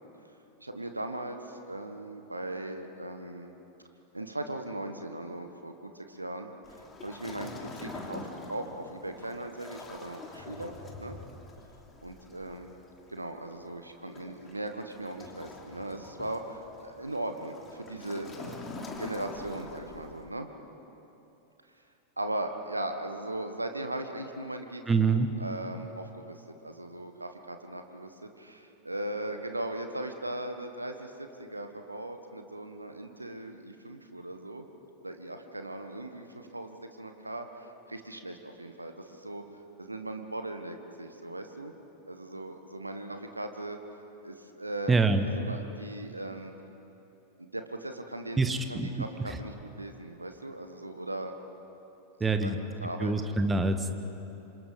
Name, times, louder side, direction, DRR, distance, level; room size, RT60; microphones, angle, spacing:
voice 1, 0.6-3.5 4.1-6.5 6.8-11.2 12.0-12.7 13.1-18.6 19.0-20.5 22.2-34.6 35.0-41.7 42.1-43.8 44.2-44.9 45.2-46.5 47.4-51.3 52.2-53.1, right 1 dB, 85° right, 6 dB, 1.5 m, -38 dB
Waves surf, 6.6-20.3, left 3 dB, 20° left, 3.1 m, -45 dB
voice 2, 24.9-25.3 44.9-45.3 48.4-48.9 49.3-49.4 52.2-52.6 53.0-53.9, right 3 dB, 15° right, 8 dB, 1.6 m, -25 dB
27.0 x 26.5 x 5.4 m, 3.0 s
figure-of-eight pair, 90°, 0 cm